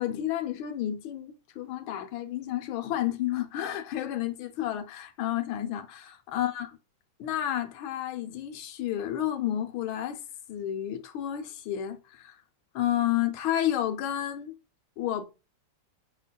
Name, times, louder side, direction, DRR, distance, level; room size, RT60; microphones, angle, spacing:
voice 1, 0.0-6.7 7.2-10.2 10.5-12.4 12.7-14.5 15.0-15.2, left 12 dB, 85° left, 1.5 m, -31 dB
5.4 x 3.9 x 2.2 m
omnidirectional pair, 2.2 m